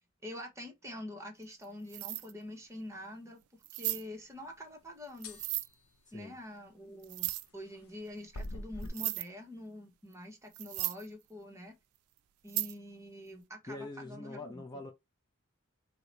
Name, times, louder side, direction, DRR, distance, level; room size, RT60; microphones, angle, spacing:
voice 1, 0.2-3.4 3.7-5.4 6.1-11.7 12.4-14.8, left 1 dB, 15° right, 1.0 m, -46 dB
sound 1, 1.4-1.6 1.9-2.3 2.8-2.9 3.6-4.0 5.2-5.7 7.0-7.5 8.4-8.5 8.8-9.2 10.1-10.2 10.5-11.1 12.5-12.7, right 17 dB, 85° right, 0.3 m, -35 dB
sound 2, 5.2-5.6 8.4-8.9, left 1 dB, 85° left, 0.7 m, -41 dB
voice 2, 13.7-14.9, left 2 dB, 20° left, 0.5 m, -44 dB
4.7 x 2.1 x 3.9 m
head